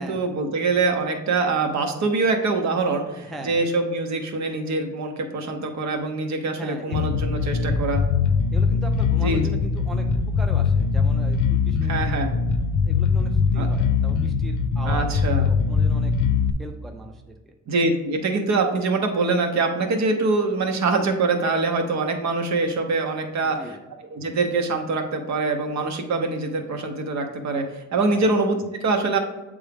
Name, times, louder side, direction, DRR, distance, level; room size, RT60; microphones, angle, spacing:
voice 1, 0.0-8.0 9.2-9.4 11.9-12.3 13.6-13.7 14.8-15.5 17.7-23.8 24.0-29.2, right 3 dB, 65° right, 4 dB, 1.0 m, -24 dB
voice 2, 3.2-3.6 6.6-7.3 8.5-12.2 12.8-15.1 15.4-16.1 16.6-17.5 23.4-23.8 28.1-28.3, right 1 dB, ahead, 4 dB, 0.3 m, -39 dB
Bass guitar, 6.9-16.5, left 5 dB, 85° left, 0.5 m, -22 dB
8.1 x 3.6 x 3.5 m, 1.1 s
wide cardioid pair, 165°, 30 cm